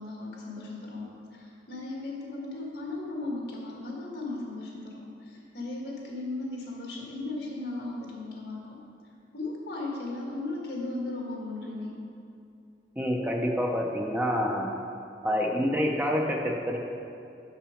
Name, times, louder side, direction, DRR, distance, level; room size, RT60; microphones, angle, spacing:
voice 1, 0.0-8.7 9.3-12.0, left 2 dB, 65° left, -2 dB, 1.5 m, -36 dB
voice 2, 13.0-14.7 15.2-16.8, equal, 10° right, 1 dB, 0.5 m, -27 dB
6.0 x 5.8 x 4.9 m, 2.5 s
head